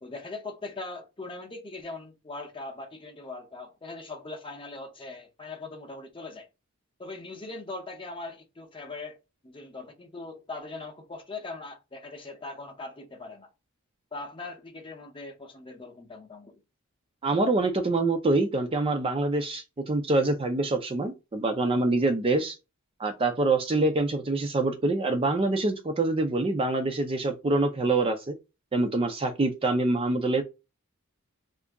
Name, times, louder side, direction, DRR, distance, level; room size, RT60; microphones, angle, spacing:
voice 1, 0.0-6.5 7.0-9.2 9.4-13.5 14.1-16.6, left 3 dB, 25° left, 0.6 m, -40 dB
voice 2, 17.2-22.6 23.0-28.3 28.7-30.4, right 2 dB, 25° right, 0.4 m, -25 dB
2.7 x 2.5 x 3.4 m
head